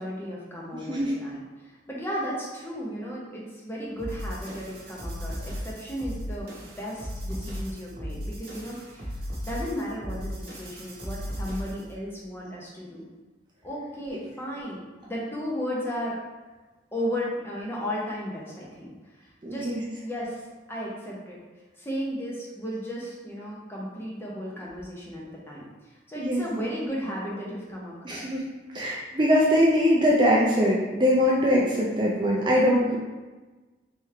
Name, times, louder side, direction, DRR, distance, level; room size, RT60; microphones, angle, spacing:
voice 1, 0.0-1.4 1.9-9.1 9.4-13.1 13.6-16.2 16.9-18.9 19.5-19.7 20.0-20.4 20.7-21.4 21.8-25.7 26.1-28.3, equal, 10° left, -5 dB, 0.7 m, -34 dB
sound 1, 4.0-11.9, equal, 50° right, 0.9 m, -36 dB
voice 2, 19.4-19.8 26.2-26.4 28.0-28.5 28.7-33.0, equal, 25° right, -4 dB, 0.4 m, -22 dB
3.5 x 3.1 x 3.2 m, 1.2 s
head